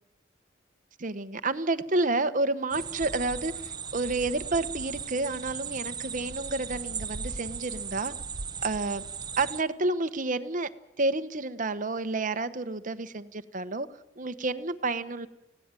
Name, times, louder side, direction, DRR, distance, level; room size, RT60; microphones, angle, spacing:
voice 1, 1.0-3.5 3.9-8.1 8.6-9.0 9.4-10.7 11.0-13.9 14.2-15.3, right 2 dB, 45° right, 1.1 m, -29 dB
sound 1, 2.7-9.6, right 6 dB, 20° right, 0.8 m, -37 dB
29.5 x 17.0 x 9.1 m
head